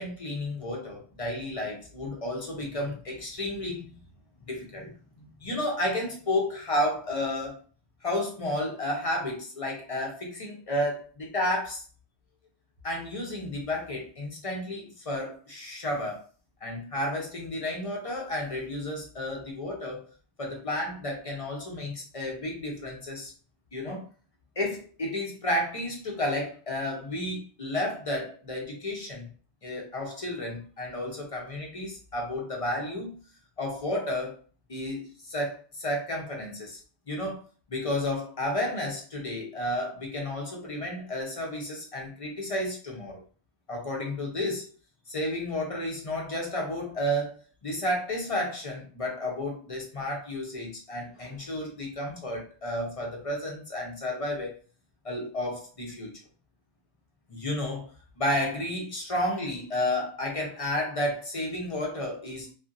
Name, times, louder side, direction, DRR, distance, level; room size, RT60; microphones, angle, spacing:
voice 1, 0.0-4.0 4.4-7.6 8.0-11.8 12.8-16.2 16.6-20.1 20.4-23.3 23.7-24.0 24.6-29.3 29.6-33.2 33.6-34.4 34.7-36.8 37.1-37.4 37.7-43.2 43.7-44.7 45.1-47.3 47.6-54.5 55.0-56.2 57.3-57.9 58.2-62.5, left 1 dB, 35° left, -1 dB, 0.7 m, -32 dB
2.7 x 2.6 x 2.5 m, 0.39 s
omnidirectional pair, 1.1 m